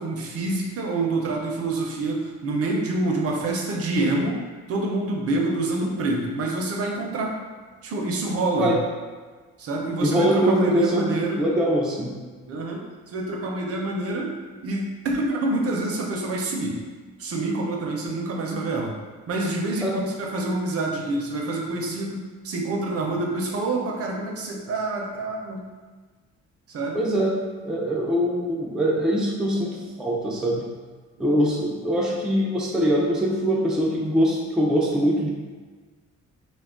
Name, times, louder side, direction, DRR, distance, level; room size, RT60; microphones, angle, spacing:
voice 1, 0.0-4.4 4.7-7.4 7.8-8.7 9.6-11.5 12.5-12.8 13.1-14.3 14.6-16.8 17.2-19.0 19.3-25.6 26.7-27.1, right 2 dB, 50° right, -1 dB, 0.5 m, -27 dB
voice 2, 10.0-11.1 11.4-12.1 19.8-19.9 26.9-30.7 31.2-35.3, equal, ahead, -4 dB, 0.4 m, -23 dB
2.3 x 2.1 x 3.6 m, 1.4 s
cardioid pair, 90°, 30 cm